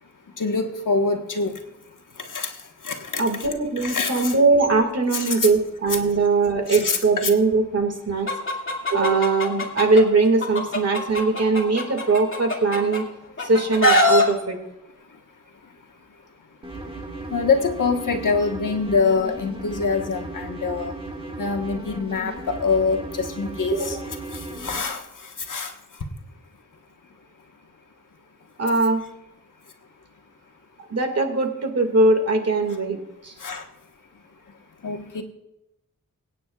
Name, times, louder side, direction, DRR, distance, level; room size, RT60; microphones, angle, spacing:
voice 1, 0.0-3.5 3.8-4.4 5.1-5.5 6.7-7.3 15.0-16.5 16.7-16.8 17.2-21.0 21.4-24.0 24.3-26.1 29.6-29.7 33.4-33.7 34.1-35.2, left 4 dB, 75° left, 3 dB, 1.4 m, -26 dB
voice 2, 3.2-8.3 8.9-13.0 13.4-14.6 23.7-24.0 28.6-29.0 30.9-33.3, right 3 dB, 50° right, 4 dB, 2.2 m, -21 dB
Chicken rooster, 8.3-10.0 10.4-13.0 13.4-14.2, left 1 dB, 40° left, 2.3 m, -21 dB
sound 1, 16.6-24.8, right 2 dB, 15° right, 1.7 m, -36 dB
24.5 x 9.1 x 2.4 m, 0.87 s
wide cardioid pair, 125°, 32 cm